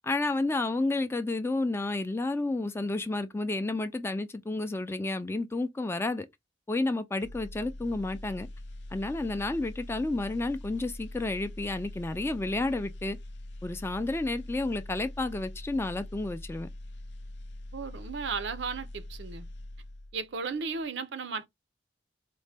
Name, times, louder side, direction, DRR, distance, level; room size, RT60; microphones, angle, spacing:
voice 1, 0.0-6.3 6.7-8.5 8.9-13.2 13.6-16.7, left 2 dB, 15° left, 0.3 m, -31 dB
sound 1, 7.2-20.3 20.7-20.9, left 1 dB, 70° left, 0.6 m, -43 dB
voice 2, 17.7-19.5 20.1-21.5, right 5 dB, 70° right, 0.6 m, -35 dB
4.1 x 2.1 x 3.3 m
head